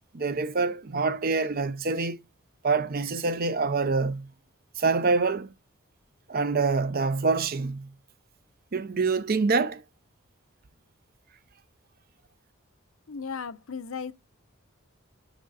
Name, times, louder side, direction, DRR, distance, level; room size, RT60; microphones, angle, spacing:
voice 1, 0.1-2.2 2.6-4.3 4.8-5.5 6.3-7.9 8.7-9.8, right 4 dB, 45° right, 0.6 m, -26 dB
voice 2, 13.1-14.1, left 5 dB, 75° left, 0.7 m, -35 dB
6.4 x 6.1 x 4.0 m
head